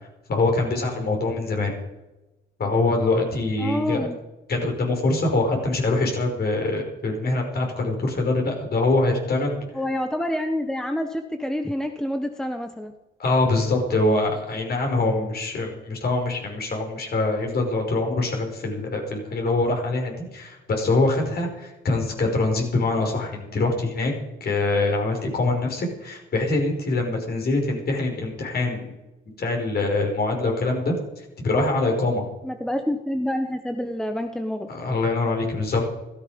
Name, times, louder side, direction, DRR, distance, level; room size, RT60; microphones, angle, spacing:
voice 1, 0.3-1.7 2.6-4.1 4.5-9.6 13.2-24.1 24.4-28.9 29.4-32.2 34.7-35.8, left 2 dB, 50° left, 1 dB, 5.7 m, -24 dB
voice 2, 3.6-4.2 9.7-12.9 32.4-34.7, left 1 dB, 5° left, 6 dB, 1.2 m, -27 dB
15.0 x 14.5 x 5.3 m, 0.99 s
cardioid pair, 90°, 20 cm